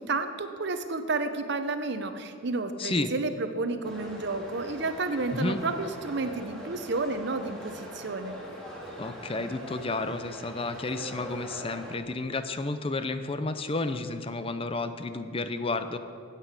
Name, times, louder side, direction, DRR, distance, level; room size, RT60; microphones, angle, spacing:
voice 1, 0.0-8.3, right 3 dB, 55° right, 9 dB, 0.8 m, -31 dB
voice 2, 2.8-3.1 5.3-5.6 9.0-16.0, left 2 dB, 25° left, 10 dB, 0.6 m, -31 dB
sound 1, 3.8-12.0, equal, 5° left, 2.0 m, -42 dB
9.2 x 8.3 x 8.2 m, 2.5 s
head